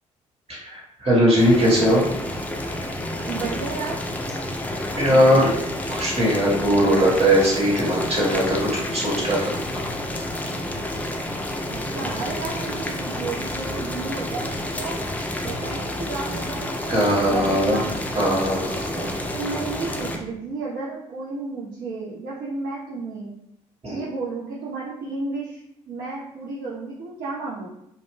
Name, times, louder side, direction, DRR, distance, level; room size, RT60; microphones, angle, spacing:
voice 1, 0.5-2.0 5.0-5.5 5.9-8.6 8.9-9.5 10.1-10.3 16.9-17.8 18.1-19.1 23.8-24.0, equal, 35° right, -5 dB, 1.4 m, -20 dB
Boiling, 1.4-20.2, left 1 dB, 10° left, 0.4 m, -30 dB
voice 2, 3.3-4.0 5.1-5.5 11.7-15.0 15.4-17.9 19.3-23.3 23.9-25.6 25.9-27.7, right 3 dB, 55° right, -6 dB, 0.6 m, -32 dB
2.5 x 2.1 x 3.4 m, 0.79 s
figure-of-eight pair, 45°, 18 cm